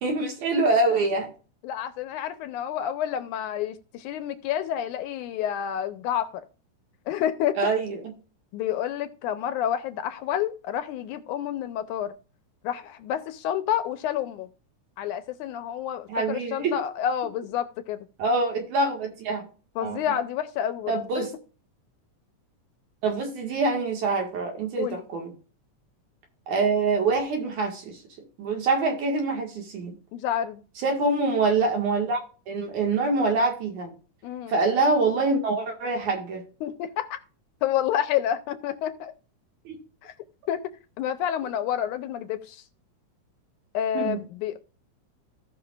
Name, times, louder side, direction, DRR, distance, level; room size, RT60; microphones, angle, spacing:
voice 1, 0.0-1.3 7.6-8.0 16.1-16.8 18.2-19.4 19.8-20.0 20.9-21.3 23.0-25.3 26.5-28.0 28.4-30.0 30.8-32.2 32.5-34.0 34.5-36.4 39.7-39.8 44.0-44.2, right 3 dB, 75° right, 3.3 m, -25 dB
voice 2, 1.6-6.4 7.1-7.7 8.5-12.1 12.6-14.5 15.0-18.1 19.8-21.3 24.8-25.1 30.1-30.6 34.2-34.5 36.6-37.2 37.6-39.1 40.0-40.1 40.5-40.7 41.0-42.6 43.7-44.6, left 10 dB, 90° left, 2.2 m, -29 dB
17.0 x 5.7 x 2.5 m
omnidirectional pair, 3.5 m